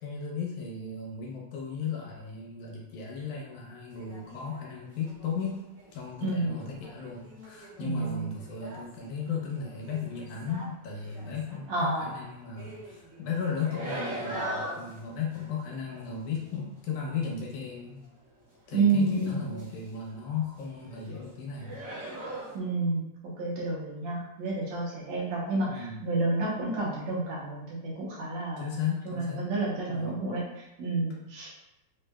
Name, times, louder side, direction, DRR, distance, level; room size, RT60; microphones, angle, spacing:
voice 1, 0.0-5.6 5.9-18.0 18.7-21.8 25.6-26.1 28.6-29.5 29.9-30.2, left 6 dB, 75° left, -2 dB, 2.2 m, -35 dB
sound 1, 3.9-4.6 5.0-6.1 6.6-10.7 11.0-12.0 12.5-18.3 18.5-20.1 20.4-21.2 21.5-22.6, right 1 dB, 40° right, 2.0 m, -42 dB
voice 2, 6.2-6.6 7.8-8.3 11.7-12.1 18.7-19.6 22.5-23.1 23.4-28.7 29.1-31.5, right 3 dB, 70° right, -5 dB, 2.2 m, -30 dB
5.4 x 3.2 x 2.3 m, 0.89 s
omnidirectional pair, 3.5 m